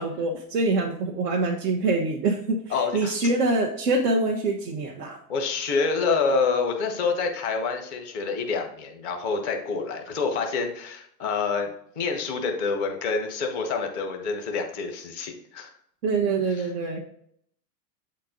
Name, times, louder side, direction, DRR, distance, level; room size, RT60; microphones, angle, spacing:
voice 1, 0.0-2.6 2.9-5.2 16.0-17.0, right 3 dB, 70° right, 0 dB, 1.3 m, -25 dB
voice 2, 2.7-3.1 5.3-11.7 11.9-15.7 16.6-16.7, left 4 dB, 10° right, 4 dB, 0.4 m, -27 dB
8.1 x 4.5 x 3.8 m, 0.67 s
supercardioid pair, 170°, 49 cm